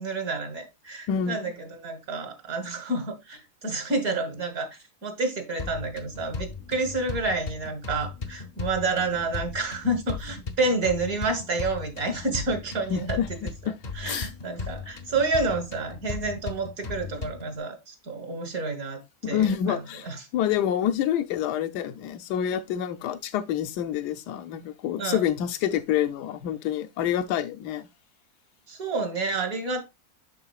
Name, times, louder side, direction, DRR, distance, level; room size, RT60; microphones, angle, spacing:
voice 1, 0.0-13.2 14.0-19.8 20.0-20.2 25.0-25.2 28.7-29.8, right 3 dB, 60° right, 1.8 m, -29 dB
voice 2, 1.1-1.5 12.9-13.3 13.7-13.8 14.0-14.3 19.2-27.9, left 9 dB, 85° left, 1.2 m, -27 dB
sound 1, 5.6-17.6, left 4 dB, 50° left, 0.5 m, -37 dB
10.5 x 3.8 x 2.3 m
omnidirectional pair, 1.7 m